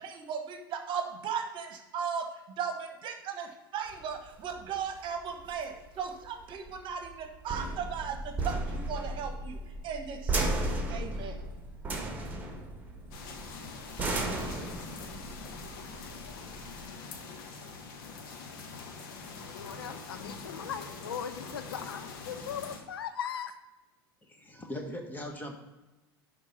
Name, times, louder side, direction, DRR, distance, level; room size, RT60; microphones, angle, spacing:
voice 1, 0.0-9.6 9.8-11.4, right 7 dB, 40° right, 5 dB, 1.3 m, -37 dB
sound 1, 3.9-16.9, right 2 dB, 15° right, 1.8 m, -35 dB
sound 2, 13.1-22.8, left 4 dB, 60° left, 1.3 m, -44 dB
voice 2, 19.4-23.5, left 8 dB, 75° left, 11 dB, 0.6 m, -39 dB
voice 3, 24.2-25.6, left 1 dB, 15° left, 3 dB, 1.5 m, -40 dB
11.0 x 3.7 x 5.4 m, 1.1 s
figure-of-eight pair, 80°, 12 cm